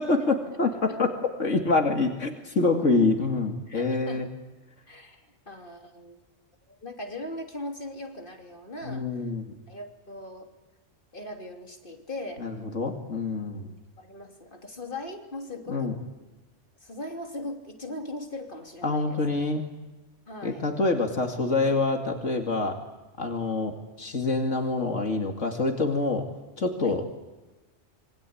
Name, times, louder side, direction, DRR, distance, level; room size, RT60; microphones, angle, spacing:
voice 1, 0.0-4.3 8.8-9.6 12.4-13.7 15.7-16.0 18.8-19.6 20.4-22.8 23.2-26.2 26.6-27.0, left 3 dB, 85° left, 3 dB, 2.7 m, -26 dB
voice 2, 3.7-4.2 4.9-6.2 6.7-9.3 9.7-10.5 11.1-12.5 14.0-15.9 16.8-19.2 20.3-20.7 26.8-27.0, left 1 dB, 45° left, 3 dB, 3.3 m, -39 dB
26.5 x 24.0 x 8.6 m, 1.1 s
omnidirectional pair, 1.3 m